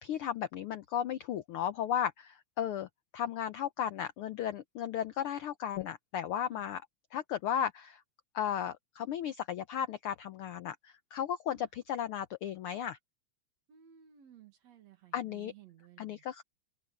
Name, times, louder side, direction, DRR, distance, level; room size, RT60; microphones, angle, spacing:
voice 1, 0.0-2.9 3.1-6.8 7.1-8.0 8.3-13.0 15.1-15.5 16.0-16.4, left 9 dB, 75° left, 1.2 m, -35 dB
voice 2, 13.7-16.2, right 10 dB, 65° right, 3.0 m, -57 dB
omnidirectional pair, 3.3 m